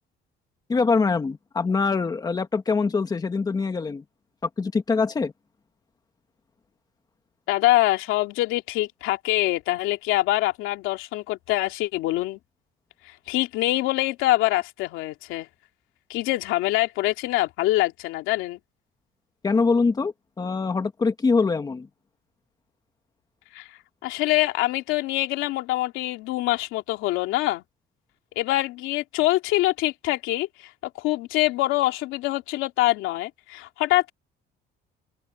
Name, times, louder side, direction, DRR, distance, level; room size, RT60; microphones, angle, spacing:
voice 1, 0.7-4.0 4.4-5.3 19.4-21.9, left 4 dB, 20° left, 1.6 m, -24 dB
voice 2, 7.5-12.4 13.0-15.5 16.1-18.6 23.5-23.7 24.0-27.6 28.4-34.1, left 17 dB, 90° left, 2.9 m, -24 dB
open air
cardioid pair, 150°, 20 cm